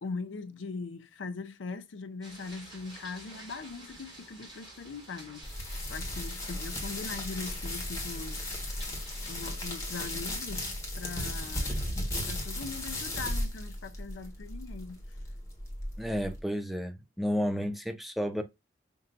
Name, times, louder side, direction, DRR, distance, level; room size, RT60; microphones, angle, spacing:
voice 1, 0.0-8.6 9.3-10.7 11.0-11.9 12.3-15.2, left 4 dB, 70° left, 0.5 m, -41 dB
sound 1, 2.2-9.5, right 1 dB, 25° right, 2.1 m, -51 dB
sound 2, 5.4-16.4, left 1 dB, 15° left, 1.2 m, -36 dB
voice 2, 16.0-18.4, equal, ahead, 0.5 m, -31 dB
5.4 x 2.7 x 2.5 m
head